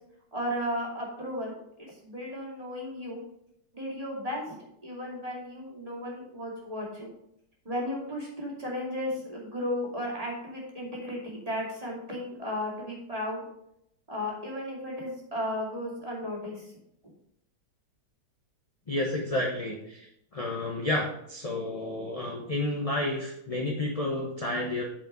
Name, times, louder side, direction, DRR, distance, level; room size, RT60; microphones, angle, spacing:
voice 1, 0.3-3.2 3.7-4.5 4.8-7.1 7.6-13.4 14.1-16.7, left 1 dB, 20° right, -4 dB, 2.6 m, -34 dB
voice 2, 18.9-20.1 20.3-24.8, left 1 dB, 25° left, 0 dB, 0.8 m, -30 dB
8.8 x 5.1 x 5.3 m, 0.77 s
omnidirectional pair, 2.0 m